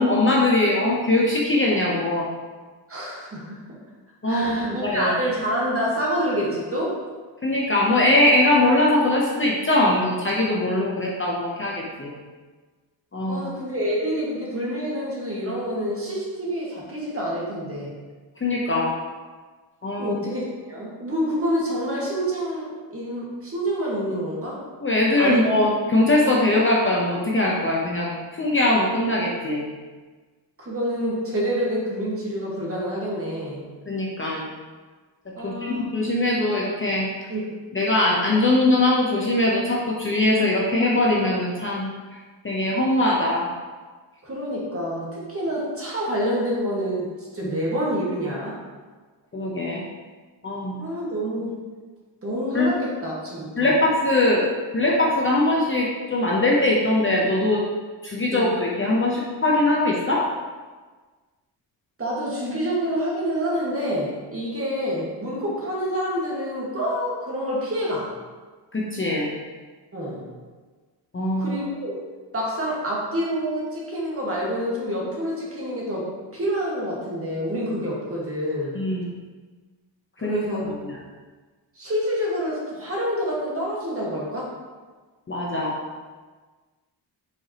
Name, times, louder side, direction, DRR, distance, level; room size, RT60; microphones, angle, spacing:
voice 1, 0.0-2.3 4.2-5.1 7.4-12.1 13.1-13.4 18.4-18.9 19.8-20.1 24.8-29.6 33.9-34.5 35.4-37.1 37.7-41.9 42.4-43.5 47.4-47.5 49.3-49.8 50.4-50.8 52.5-52.7 53.6-54.4 54.7-57.6 58.0-60.2 68.7-69.3 71.1-71.6 78.7-79.0 80.2-80.9 85.3-85.8, left 1 dB, 25° left, -4 dB, 0.8 m, -21 dB
voice 2, 2.9-3.6 4.2-7.0 13.3-17.9 20.0-24.6 25.2-25.4 30.6-33.6 35.4-35.8 37.3-37.5 44.2-47.1 47.3-48.6 50.8-51.6 52.2-53.7 58.3-58.5 62.0-68.1 69.9-70.2 71.4-72.0 72.3-78.8 80.2-80.7 81.8-84.5, equal, 30° right, -5 dB, 1.6 m, -27 dB
7.6 x 5.0 x 2.9 m, 1.4 s
wide cardioid pair, 170°, 44 cm